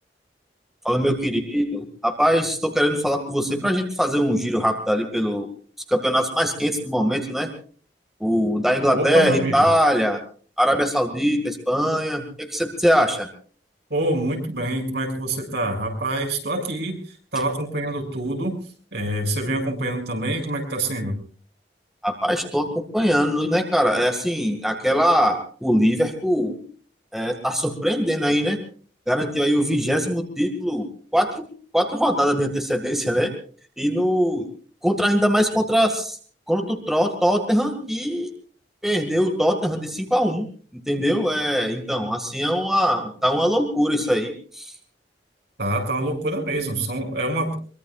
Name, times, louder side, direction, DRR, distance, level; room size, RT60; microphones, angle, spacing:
voice 1, 0.8-5.5 5.9-7.5 8.2-10.2 10.6-13.3 22.0-26.6 27.1-28.6 29.1-30.9 31.1-31.5 31.7-33.3 33.8-34.5 34.8-36.2 36.5-38.3 38.8-40.5 40.9-44.7, equal, ahead, 4 dB, 2.0 m, -22 dB
voice 2, 8.9-9.7 13.9-18.6 18.9-21.2 45.6-47.6, right 1 dB, 70° right, 2 dB, 6.6 m, -26 dB
23.5 x 23.5 x 2.4 m, 0.42 s
head